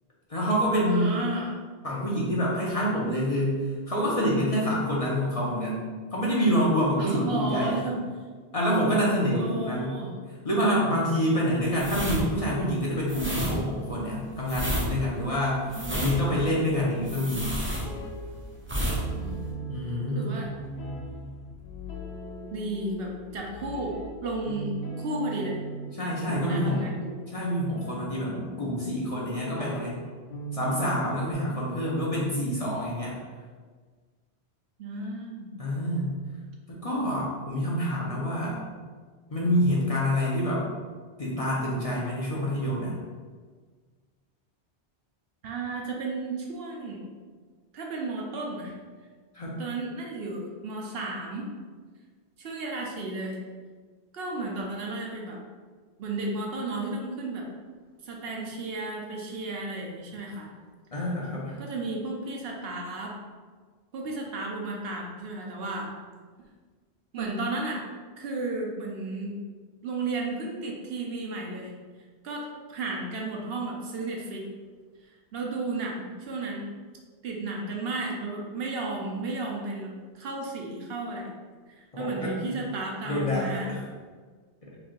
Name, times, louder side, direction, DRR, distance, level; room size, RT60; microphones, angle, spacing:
voice 1, 0.3-1.2 1.8-7.8 8.5-10.0 10.3-17.6 19.7-20.3 26.0-26.8 27.3-30.0 30.5-33.2 35.6-36.1 36.7-38.6 39.3-40.7 41.2-43.0 49.3-49.6 60.9-61.6 81.9-82.6 83.0-83.8 84.6-84.8, equal, 40° left, -6 dB, 0.6 m, -27 dB
voice 2, 0.8-1.5 7.0-8.0 9.4-10.2 15.7-16.5 19.1-19.5 20.1-20.5 22.5-24.7 25.0-25.6 26.4-27.1 28.6-28.8 34.8-35.5 45.4-47.0 47.7-48.7 49.6-51.5 52.4-53.4 54.1-55.4 56.0-57.5 58.0-60.5 61.6-63.2 63.9-65.9 67.1-67.9 68.2-69.4 69.8-71.7 72.2-74.5 75.3-76.6 77.2-81.3 81.7-83.7, right 2 dB, 65° right, -1 dB, 0.8 m, -33 dB
sound 1, 11.7-18.3 18.6-19.0 19.3-19.5, equal, 20° right, 0.4 m, -31 dB
sound 2, 15.7-31.3, right 1 dB, 70° left, 0.8 m, -39 dB
3.1 x 2.6 x 3.7 m, 1.5 s
omnidirectional pair, 1.1 m